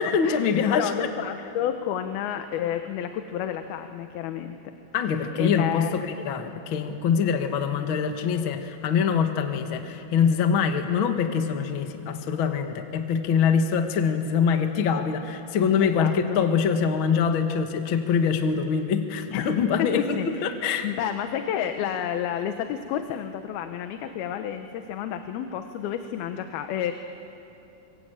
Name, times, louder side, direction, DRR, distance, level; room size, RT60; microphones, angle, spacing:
voice 1, 0.0-0.9 4.9-20.9, left 6 dB, 60° left, 6 dB, 1.3 m, -24 dB
voice 2, 0.7-4.6 5.4-6.0 15.8-16.4 19.3-19.5 19.8-20.5 20.8-26.9, left 10 dB, 80° left, 7 dB, 2.8 m, -30 dB
25.0 x 24.5 x 8.9 m, 2.7 s
omnidirectional pair, 4.4 m